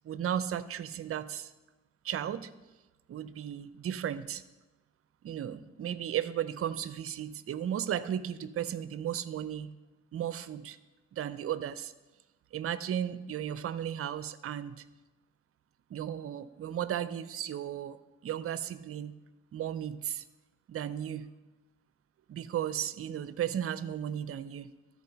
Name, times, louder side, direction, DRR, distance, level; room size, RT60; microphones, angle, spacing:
voice 1, 0.0-1.5 2.0-2.5 3.1-4.4 5.2-9.7 10.1-10.8 11.1-11.9 12.5-14.8 15.9-18.0 18.2-19.1 19.5-20.2 20.7-21.3 22.3-24.7, right 10 dB, 50° right, 15 dB, 0.6 m, -35 dB
13.0 x 4.7 x 5.4 m, 1.1 s
supercardioid pair, 60°, 30 cm